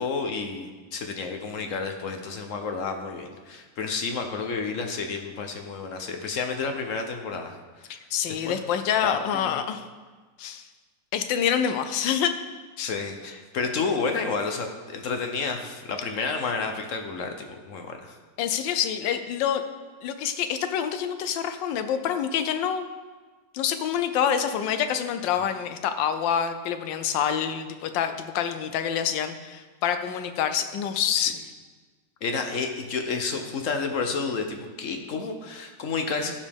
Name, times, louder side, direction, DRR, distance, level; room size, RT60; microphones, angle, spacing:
voice 1, 0.0-7.9 8.3-8.6 9.0-9.6 12.8-18.2 31.2-31.3 32.2-36.4, left 4 dB, 60° left, 5 dB, 0.9 m, -30 dB
voice 2, 7.9-9.8 10.4-10.6 11.1-12.3 12.8-12.9 18.4-19.6 20.0-22.8 23.5-31.5, left 8 dB, 90° left, 9 dB, 1.4 m, -27 dB
14.5 x 5.3 x 3.5 m, 1.4 s
omnidirectional pair, 1.9 m